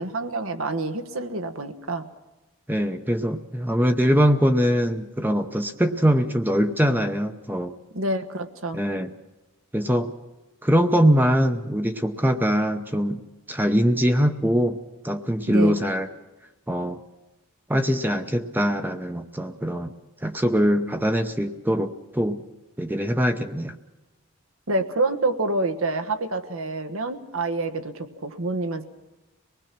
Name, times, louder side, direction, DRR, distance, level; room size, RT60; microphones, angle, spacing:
voice 1, 0.0-2.1 7.9-8.8 15.5-15.7 24.7-28.8, right 2 dB, 75° right, 8 dB, 1.4 m, -27 dB
voice 2, 2.7-7.7 8.7-9.1 9.7-10.1 10.6-13.2 13.5-14.8 15.0-16.1 16.7-17.0 17.7-19.9 20.2-22.4 22.8-23.7, equal, 10° right, 7 dB, 0.7 m, -22 dB
25.0 x 19.5 x 6.0 m, 1.1 s
head